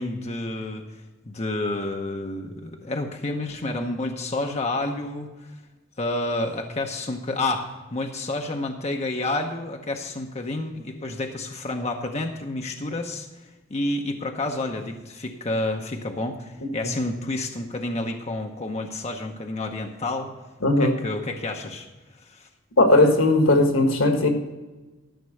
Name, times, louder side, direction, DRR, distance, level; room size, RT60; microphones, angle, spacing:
voice 1, 0.0-5.5 6.0-20.3 20.8-21.9 22.2-22.5, left 2 dB, 35° left, 3 dB, 0.8 m, -30 dB
voice 2, 20.6-21.0 22.8-24.3, left 2 dB, 80° left, 5 dB, 1.6 m, -18 dB
12.5 x 5.9 x 6.5 m, 1.2 s
head